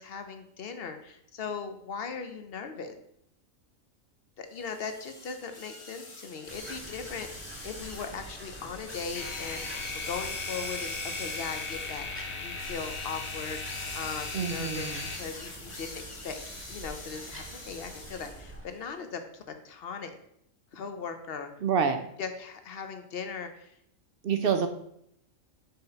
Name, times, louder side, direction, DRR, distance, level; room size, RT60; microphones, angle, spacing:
voice 1, 0.0-2.9 4.4-14.9 15.1-20.1 20.7-21.5 22.2-23.7 24.3-24.7, left 5 dB, 55° left, 7 dB, 0.8 m, -39 dB
sound 1, 4.6-18.5, left 2 dB, 25° left, 0.8 m, -43 dB
sound 2, 6.5-18.6, right 1 dB, 10° right, 1.3 m, -47 dB
sound 3, 9.1-15.9, left 4 dB, 85° left, 1.4 m, -38 dB
voice 2, 14.3-15.0 21.6-22.0 24.2-24.7, right 6 dB, 65° right, 8 dB, 0.6 m, -27 dB
5.5 x 3.6 x 5.6 m, 0.73 s
omnidirectional pair, 1.4 m